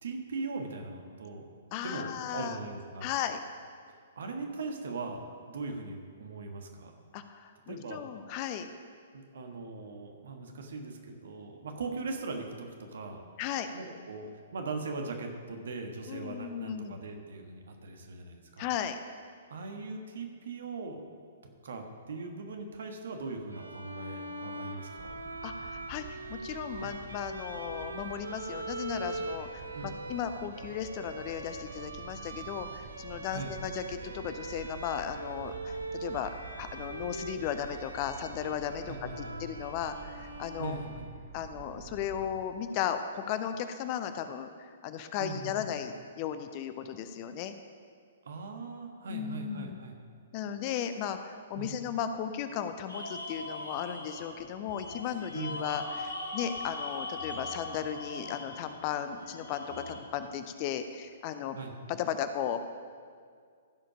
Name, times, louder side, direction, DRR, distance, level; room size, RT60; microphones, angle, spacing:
voice 1, 0.0-1.5 1.8-3.1 4.2-7.0 7.7-8.0 9.1-13.2 13.7-18.7 19.5-21.0 21.6-25.2 26.8-27.0 29.7-30.0 33.3-33.5 38.9-39.4 40.6-41.1 45.2-45.6 48.2-50.0 51.5-51.7 55.3-55.6 61.5-61.7, right 3 dB, 60° right, 4 dB, 1.3 m, -40 dB
voice 2, 1.7-2.6 3.0-3.4 7.1-8.7 13.4-13.7 16.1-17.0 18.6-19.0 25.4-26.0 26.3-36.3 36.6-40.8 41.3-47.5 49.1-49.8 50.3-61.6 61.9-62.6, left 9 dB, 35° left, 9 dB, 0.5 m, -36 dB
Bowed string instrument, 23.5-41.3, right 2 dB, 75° right, 0.8 m, -42 dB
sound 1, 25.0-42.4, right 7 dB, 40° right, 0.9 m, -49 dB
sound 2, 52.9-60.0, left 2 dB, 80° left, 1.4 m, -40 dB
15.5 x 5.1 x 5.0 m, 2.1 s
figure-of-eight pair, 115°, 0 cm